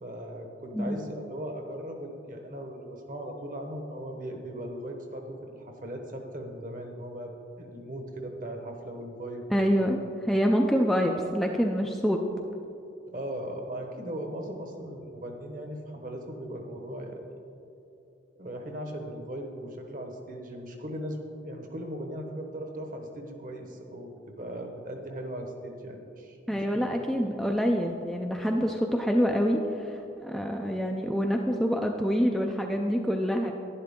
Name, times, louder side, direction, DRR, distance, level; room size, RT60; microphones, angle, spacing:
voice 1, 0.0-9.7 13.1-17.2 18.4-21.2 21.4-26.9, right 1 dB, 45° right, 3 dB, 1.1 m, -38 dB
voice 2, 9.5-10.0 10.3-12.2 26.5-33.5, equal, ahead, 1 dB, 0.4 m, -26 dB
11.0 x 10.5 x 3.7 m, 2.7 s
head